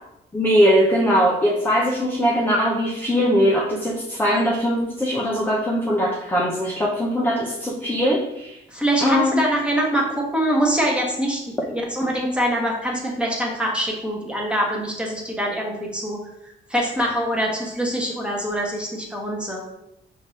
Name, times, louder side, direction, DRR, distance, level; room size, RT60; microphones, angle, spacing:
voice 1, 0.3-8.6 9.0-9.4, equal, 10° left, -2 dB, 0.6 m, -20 dB
voice 2, 8.7-16.2 16.7-19.6, right 1 dB, 5° right, -2 dB, 1.1 m, -24 dB
5.1 x 2.7 x 3.2 m, 0.84 s
cardioid pair, 95°, 19 cm